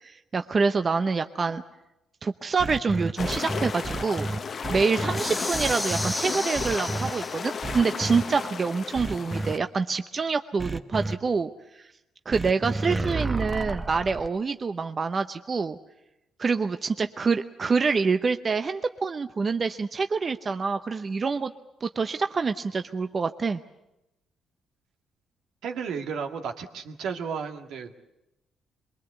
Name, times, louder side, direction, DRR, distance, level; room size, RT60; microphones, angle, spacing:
voice 1, 0.0-1.6 2.2-4.3 4.7-11.5 11.7-11.9 12.3-15.8 16.4-21.5 21.8-23.6, right 4 dB, 35° right, 8 dB, 0.8 m, -26 dB
sound 1, 2.6-5.2 5.5-6.1 6.5-7.1 7.6-8.2 8.9-9.5 10.6-11.1 12.3-14.3, right 2 dB, 20° right, 1.1 m, -31 dB
sound 2, 3.2-9.6, left 6 dB, 45° left, 0.9 m, -34 dB
sound 3, 5.1-7.7, left 1 dB, 10° left, 1.2 m, -33 dB
voice 2, 25.6-27.9, right 6 dB, 80° right, 4 dB, 2.0 m, -33 dB
23.5 x 22.0 x 8.1 m, 0.92 s
cardioid pair, 90°, 0 cm